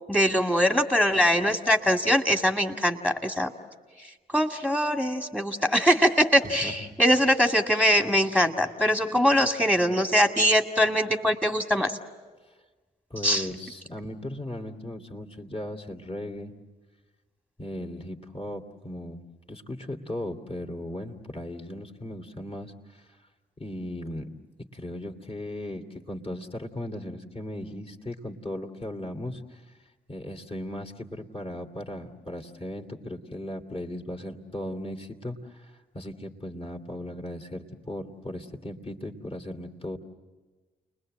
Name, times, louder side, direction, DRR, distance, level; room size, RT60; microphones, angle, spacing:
voice 1, 0.1-3.5 4.3-11.9 13.2-13.5, equal, 10° left, 4 dB, 2.1 m, -22 dB
voice 2, 6.4-6.9 13.1-16.5 17.6-19.2 19.5-23.1 23.6-24.3 24.7-29.6 30.1-40.0, left 1 dB, 30° left, 4 dB, 2.8 m, -37 dB
29.5 x 21.0 x 7.8 m, 1.3 s
supercardioid pair, 55°, 19 cm